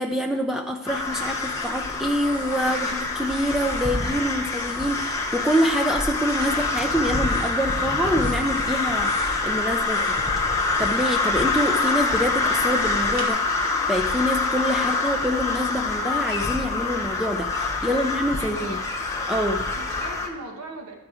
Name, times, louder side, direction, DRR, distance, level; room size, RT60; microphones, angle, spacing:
voice 1, 0.0-10.2 10.8-18.8 19.2-19.7, equal, ahead, 3 dB, 0.3 m, -26 dB
sound 1, 0.9-20.3, left 3 dB, 15° left, 1.0 m, -25 dB
sound 2, 0.9-13.3, equal, 60° right, 1.6 m, -43 dB
voice 2, 18.4-18.8 19.7-20.9, right 1 dB, 90° right, 3 dB, 1.2 m, -39 dB
12.0 x 4.8 x 4.8 m, 0.97 s
head